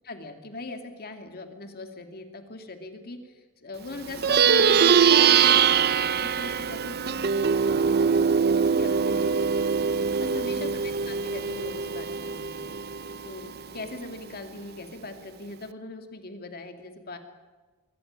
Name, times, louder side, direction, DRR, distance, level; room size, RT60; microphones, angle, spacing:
voice 1, 0.0-9.7 10.2-12.8 13.2-17.2, left 2 dB, 45° left, 5 dB, 2.4 m, -40 dB
Plucked string instrument, 4.1-13.8, right 6 dB, 45° right, 0.6 m, -23 dB
24.0 x 14.0 x 9.5 m, 1.3 s
head